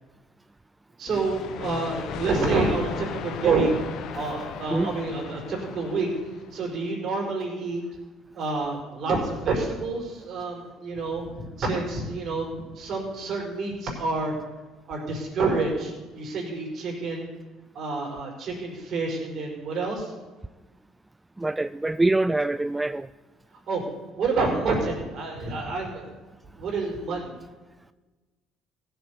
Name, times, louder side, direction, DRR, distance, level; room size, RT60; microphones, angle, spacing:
voice 1, 1.0-3.7 4.1-6.1 6.5-7.8 8.3-12.5 12.8-14.3 14.9-17.3 17.7-20.1 23.7-23.8 24.2-26.1 26.6-27.3, right 3 dB, 55° right, 5.1 m, -28 dB
sound 1, 1.1-6.8, left 8 dB, 65° left, 1.1 m, -37 dB
voice 2, 21.4-23.1, right 2 dB, 15° right, 0.4 m, -25 dB
15.5 x 7.9 x 8.4 m
hypercardioid pair, 70°, 0 cm